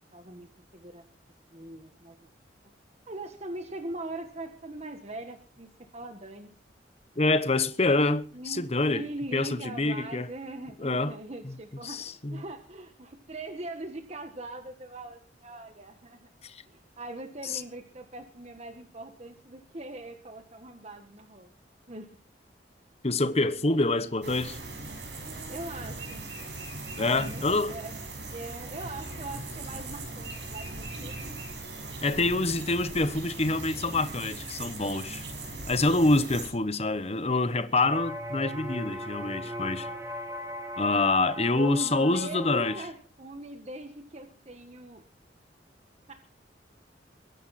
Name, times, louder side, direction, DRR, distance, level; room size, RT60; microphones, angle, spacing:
voice 1, 0.1-1.0 1.5-2.3 3.1-6.5 8.3-16.2 16.6-21.5 21.9-22.1 23.7-23.9 25.0-25.1 25.5-26.2 26.9-27.9 28.3-31.1 33.6-33.8 41.5-45.0 46.1-46.2, right 2 dB, 35° right, 1.5 m, -41 dB
voice 2, 7.2-9.0 9.3-10.3 10.8-11.1 11.4-11.5 11.8-12.4 16.4-16.6 17.4-17.6 23.0-24.6 26.9-27.8 32.0-35.2 35.7-39.9 40.8-42.8, left 2 dB, 35° left, 1.1 m, -26 dB
sound 1, 24.2-36.5, right 2 dB, 75° right, 5.7 m, -39 dB
sound 2, 37.8-42.9, equal, 15° right, 2.0 m, -38 dB
23.0 x 11.0 x 4.3 m
head